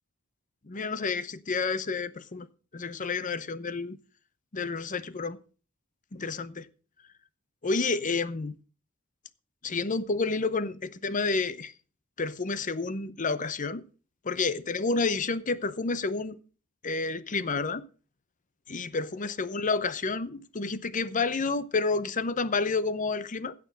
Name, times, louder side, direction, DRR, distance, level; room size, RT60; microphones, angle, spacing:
voice 1, 0.6-2.5 2.7-4.0 4.5-5.4 6.1-6.7 7.6-8.6 9.6-11.7 12.2-13.8 14.2-16.4 16.8-17.8 18.7-23.5, left 4 dB, 40° left, 0.8 m, -30 dB
16.0 x 6.1 x 6.2 m
head